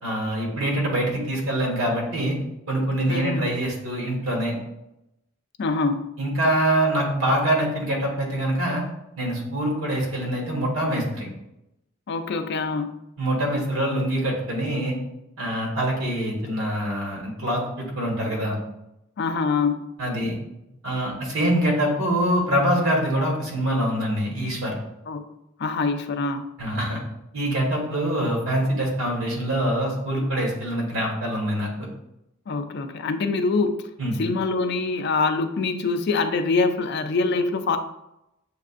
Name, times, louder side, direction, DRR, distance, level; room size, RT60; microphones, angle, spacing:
voice 1, 0.0-2.4 2.7-4.5 6.2-8.8 9.2-11.3 13.2-14.9 15.4-18.6 20.0-20.3 20.8-24.7 26.6-27.0 27.3-31.7 34.0-34.2, right 1 dB, 75° right, -2 dB, 1.5 m, -24 dB
voice 2, 3.1-3.5 5.6-6.1 12.1-12.9 19.2-19.9 25.1-25.3 25.6-26.5 32.5-33.9 34.2-37.8, left 4 dB, 55° left, 8 dB, 0.4 m, -24 dB
7.2 x 2.4 x 2.5 m, 0.87 s
head